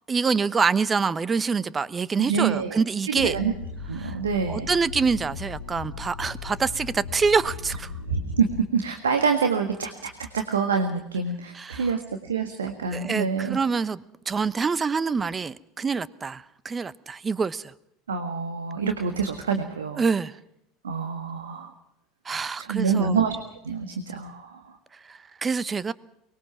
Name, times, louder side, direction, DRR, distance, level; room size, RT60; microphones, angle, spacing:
voice 1, 0.1-3.4 4.0-4.1 4.5-7.9 11.5-11.9 12.9-17.7 20.0-20.4 22.2-23.2 25.1-25.9, right 5 dB, 25° right, 18 dB, 0.9 m, -26 dB
voice 2, 2.2-2.8 3.1-3.5 3.9-4.7 8.1-13.6 18.1-20.0 20.8-21.7 22.6-24.7, right 5 dB, 80° right, 6 dB, 1.7 m, -26 dB
sound 1, 3.2-8.6, left 5 dB, 85° left, 1.9 m, -37 dB
23.5 x 21.0 x 6.0 m, 0.80 s
figure-of-eight pair, 75°, 0 cm